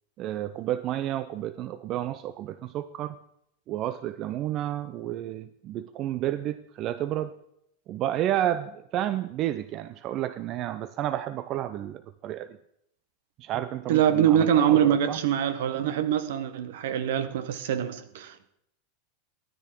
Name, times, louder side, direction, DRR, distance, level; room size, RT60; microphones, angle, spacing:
voice 1, 0.2-3.2 3.7-7.3 7.9-12.6 13.4-15.2, right 12 dB, 45° right, 0.5 m, -31 dB
voice 2, 13.9-18.5, right 10 dB, 70° right, 1.1 m, -24 dB
13.5 x 9.4 x 4.6 m
hypercardioid pair, 100°, 0 cm